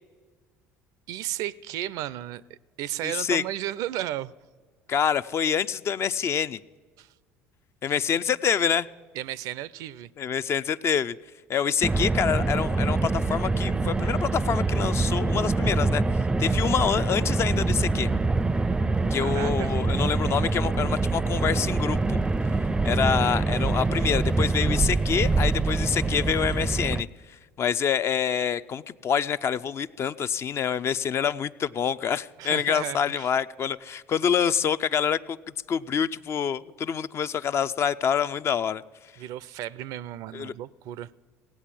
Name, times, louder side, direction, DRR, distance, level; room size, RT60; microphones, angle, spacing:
voice 1, 1.1-4.3 7.0-7.1 9.1-10.1 19.1-19.7 32.4-33.3 39.2-41.1, right 13 dB, 65° right, 20 dB, 0.4 m, -34 dB
voice 2, 3.0-3.4 4.9-6.6 7.8-8.9 10.2-11.2 11.5-16.0 16.4-18.1 19.1-22.2 22.8-27.1 27.6-35.4 35.7-38.8 40.3-40.5, left 7 dB, 40° left, 14 dB, 0.4 m, -26 dB
Car, 11.8-27.0, right 3 dB, 15° right, 0.5 m, -25 dB
17.5 x 8.2 x 7.5 m, 1.5 s
supercardioid pair, 80°, 7 cm